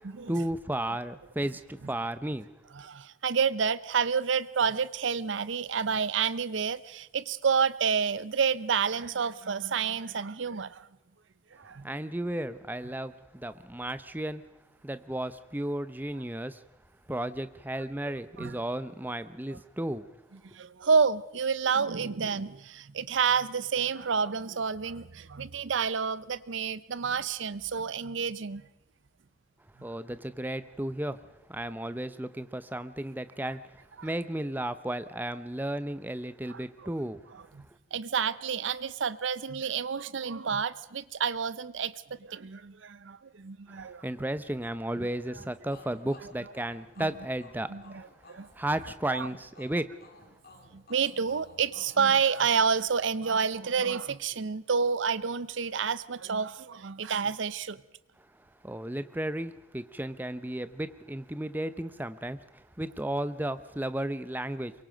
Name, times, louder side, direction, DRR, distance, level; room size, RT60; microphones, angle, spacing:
voice 1, 0.3-2.5 11.8-14.4 14.8-16.6 17.1-20.0 29.8-31.2 31.5-37.2 43.7-48.1 48.6-50.1 58.6-64.7, right 1 dB, 10° right, 13 dB, 0.6 m, -34 dB
voice 2, 2.7-10.9 11.5-11.9 18.4-18.6 19.5-19.6 20.5-28.6 33.4-33.5 34.0-34.1 36.5-36.9 37.3-37.6 37.9-44.1 47.0-47.1 47.7-48.0 48.3-48.5 49.1-49.3 50.7-57.8, right 6 dB, 70° right, 17 dB, 0.6 m, -29 dB
sound 1, 45.7-53.3, left 3 dB, 50° left, 2.6 m, -56 dB
23.5 x 23.0 x 5.2 m, 0.93 s
head